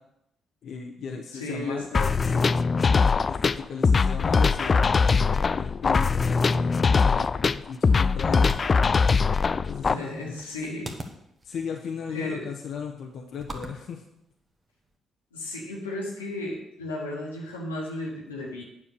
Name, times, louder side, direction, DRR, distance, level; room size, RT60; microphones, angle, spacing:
voice 1, 0.6-2.5 3.2-8.6 9.6-10.4 11.4-14.0, left 6 dB, 60° left, 1 dB, 0.8 m, -36 dB
voice 2, 1.3-2.5 9.9-10.9 12.1-12.5 15.3-18.6, left 1 dB, 90° left, -2 dB, 1.5 m, -34 dB
sound 1, 1.9-9.9, left 4 dB, 40° left, 0.3 m, -22 dB
sound 2, 7.4-15.0, right 1 dB, 35° right, 1.4 m, -45 dB
8.8 x 4.9 x 6.8 m, 0.81 s
hypercardioid pair, 40°, 0 cm